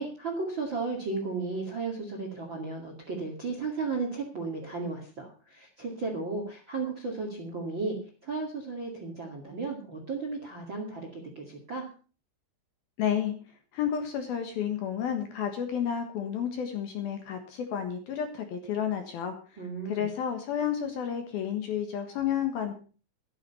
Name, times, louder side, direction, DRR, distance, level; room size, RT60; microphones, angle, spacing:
voice 1, 0.0-8.0 8.2-11.9 19.6-20.1, right 3 dB, 40° right, 3 dB, 1.8 m, -34 dB
voice 2, 13.0-13.3 13.7-19.3 19.9-22.7, left 8 dB, 65° left, 6 dB, 2.8 m, -31 dB
13.0 x 11.0 x 5.5 m, 0.38 s
omnidirectional pair, 5.6 m